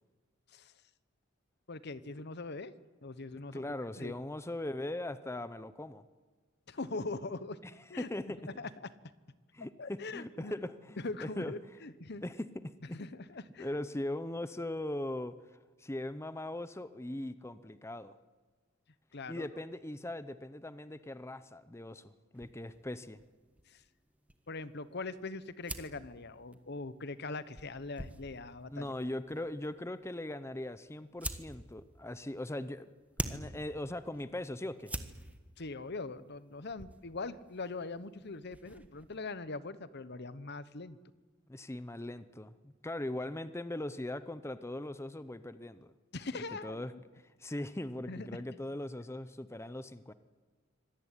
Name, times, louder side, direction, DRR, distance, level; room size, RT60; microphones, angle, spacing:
voice 1, 1.7-2.7 3.0-4.1 6.7-7.6 7.9-8.9 9.8-10.5 11.0-12.2 12.9-13.7 19.1-19.5 23.7-23.8 24.5-28.9 35.6-41.0 46.1-46.8 48.1-48.3, left 3 dB, 55° left, 15 dB, 1.0 m, -42 dB
voice 2, 3.5-6.0 8.0-8.4 9.5-11.5 12.2-12.7 13.6-15.3 15.8-18.1 19.3-23.2 28.7-32.9 33.3-34.9 41.5-45.9 46.6-46.9 47.4-50.1, left 1 dB, 15° left, 13 dB, 0.7 m, -40 dB
sound 1, 22.3-39.2, right 1 dB, 5° right, 1.4 m, -47 dB
25.0 x 18.0 x 9.8 m, 1.3 s
head